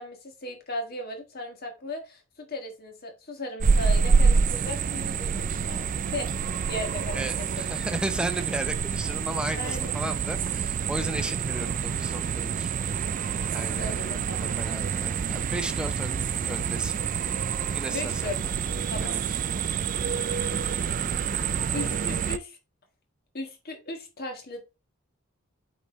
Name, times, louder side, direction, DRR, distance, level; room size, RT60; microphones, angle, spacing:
voice 1, 0.0-6.3 6.7-7.5 9.6-9.9 13.8-14.6 17.9-18.4 18.9-19.1 21.7-22.6 23.3-24.7, left 2 dB, 45° left, 1.5 m, -36 dB
sound 1, 3.6-22.4, right 6 dB, 40° right, 0.3 m, -27 dB
voice 2, 7.1-12.7 13.5-14.0 14.4-17.0 17.7-18.4 19.0-19.2, right 1 dB, 5° right, 0.6 m, -35 dB
8.2 x 4.2 x 3.1 m
head